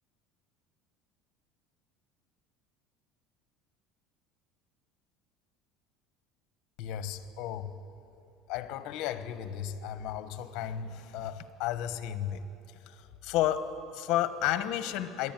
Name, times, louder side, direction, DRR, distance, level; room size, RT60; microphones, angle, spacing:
voice 1, 6.8-7.7 8.5-12.5 12.9-15.3, left 11 dB, 60° left, 12 dB, 1.1 m, -33 dB
26.0 x 11.0 x 9.2 m, 2.8 s
cardioid pair, 155°, 0 cm